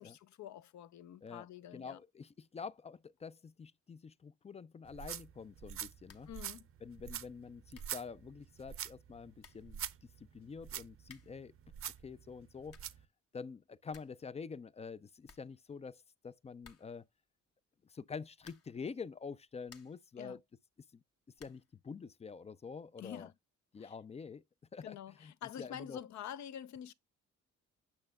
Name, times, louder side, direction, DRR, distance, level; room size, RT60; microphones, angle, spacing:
voice 1, 0.0-2.0 6.3-6.7 20.2-20.4 23.0-23.3 23.8-23.9 24.8-26.9, left 10 dB, 65° left, 0.7 m, -47 dB
voice 2, 1.7-6.3 6.8-9.8 10.2-11.5 12.0-12.8 13.3-17.1 17.8-20.4 20.9-21.0 21.4-23.3 23.7-24.4 24.7-25.3 25.6-26.0, left 5 dB, 20° left, 0.3 m, -47 dB
sound 1, 4.9-13.1, right 9 dB, 45° right, 0.6 m, -46 dB
sound 2, 6.0-6.4 6.7-6.8 7.4-7.5 7.7-8.0 9.0-9.1 9.4-9.7 11.0-11.5 12.4-13.0 13.4-13.5 13.7-14.3 14.5-14.6 14.9-15.0 15.2-16.0 16.6-17.1 18.4-18.9 19.3-20.1 21.3-21.7, left 5 dB, 50° left, 1.2 m, -61 dB
8.7 x 6.2 x 2.3 m
cardioid pair, 90°, 30 cm